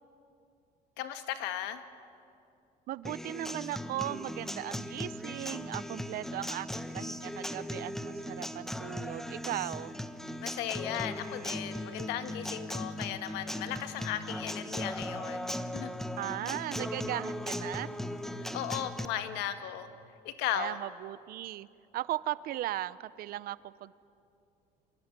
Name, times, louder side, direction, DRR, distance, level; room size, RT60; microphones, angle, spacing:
voice 1, 1.0-1.8 10.4-15.9 18.5-19.9 20.2-20.8, left 11 dB, 80° left, 9 dB, 1.7 m, -36 dB
voice 2, 2.9-9.9 16.2-17.9 20.5-21.7 21.9-23.9, right 14 dB, 60° right, 18 dB, 0.7 m, -37 dB
Acoustic guitar, 3.0-19.1, left 1 dB, ahead, 1.1 m, -38 dB
25.5 x 21.5 x 9.9 m, 2.7 s
cardioid pair, 115°, 17 cm